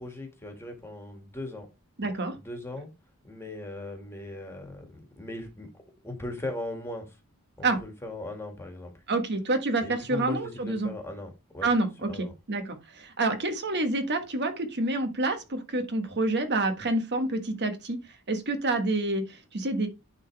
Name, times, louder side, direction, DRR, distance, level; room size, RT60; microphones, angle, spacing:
voice 1, 0.0-1.7 2.4-2.9 3.2-5.7 6.0-7.2 7.6-8.9 9.8-11.7 12.1-12.3, left 2 dB, 10° left, 1.8 m, -38 dB
voice 2, 2.0-2.3 7.6-7.8 9.1-10.9 11.6-18.0 18.3-19.9, right 2 dB, 50° right, 1.3 m, -28 dB
10.5 x 3.9 x 3.3 m
head